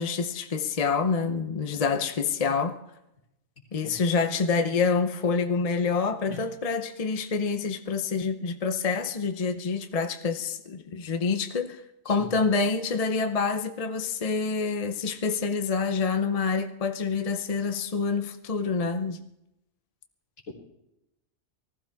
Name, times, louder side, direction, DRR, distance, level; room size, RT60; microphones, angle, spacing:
voice 1, 0.0-2.8 3.7-19.2, left 5 dB, 35° left, 0.7 m, -27 dB
voice 2, 12.1-12.4, left 1 dB, 85° left, 3.7 m, -39 dB
19.5 x 15.0 x 3.5 m
omnidirectional pair, 1.4 m